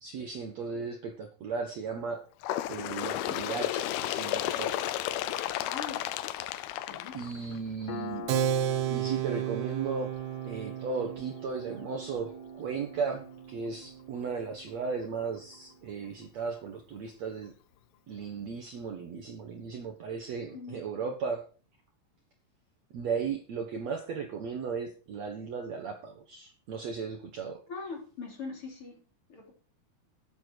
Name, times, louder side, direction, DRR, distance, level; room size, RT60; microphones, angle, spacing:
voice 1, 0.0-2.2 2.7-5.1 7.1-8.3 8.9-10.1 10.5-12.3 12.6-17.5 18.1-21.4 22.9-27.6, right 5 dB, 60° right, 4 dB, 2.1 m, -36 dB
Bird, 2.4-7.8 8.7-8.8 9.2-9.3 10.2-10.3 11.2-11.3 12.2-12.3, left 13 dB, 80° left, 2.7 m, -33 dB
voice 2, 5.6-6.1 6.9-7.2 20.5-20.8 27.7-29.0 29.3-29.5, left 4 dB, 35° left, 2 dB, 3.9 m, -41 dB
Piano, 7.9-15.1, left 4 dB, 65° left, 3.0 m, -46 dB
Keyboard (musical), 8.3-14.4, right 10 dB, 80° right, 3.1 m, -34 dB
13.0 x 9.9 x 4.7 m, 0.37 s
omnidirectional pair, 4.5 m